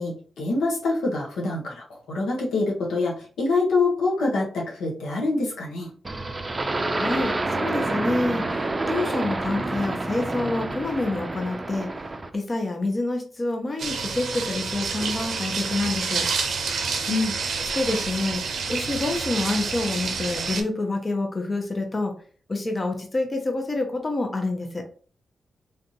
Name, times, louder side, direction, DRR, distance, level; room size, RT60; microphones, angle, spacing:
voice 1, 0.0-5.9 17.1-17.3, left 3 dB, 85° left, -2 dB, 1.0 m, -25 dB
sound 1, 6.0-12.4, right 2 dB, 30° right, 0.5 m, -28 dB
voice 2, 7.0-11.9 12.3-16.3 17.6-22.1 22.5-24.8, left 2 dB, 35° left, 4 dB, 0.7 m, -27 dB
sound 2, 13.8-20.6, right 5 dB, 75° right, 0.6 m, -28 dB
3.4 x 2.6 x 2.8 m, 0.42 s
supercardioid pair, 50°, 0 cm